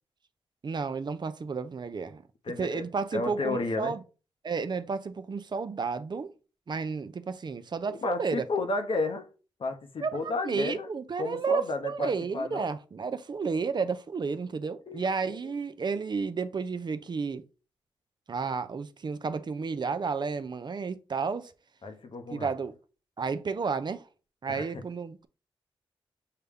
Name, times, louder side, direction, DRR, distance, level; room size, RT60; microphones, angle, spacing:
voice 1, 0.6-2.2 2.6-4.0 4.4-6.3 6.7-8.5 10.0-17.4 18.3-21.5 22.3-22.7 23.2-24.1 24.4-25.3, right 5 dB, 45° right, 0.5 m, -32 dB
voice 2, 2.4-2.8 3.1-4.0 7.9-9.3 9.6-10.9 11.2-12.7 14.9-15.4 21.8-22.5 24.5-24.7, left 3 dB, 60° left, 0.8 m, -32 dB
6.5 x 2.2 x 3.5 m
cardioid pair, 55°, 10 cm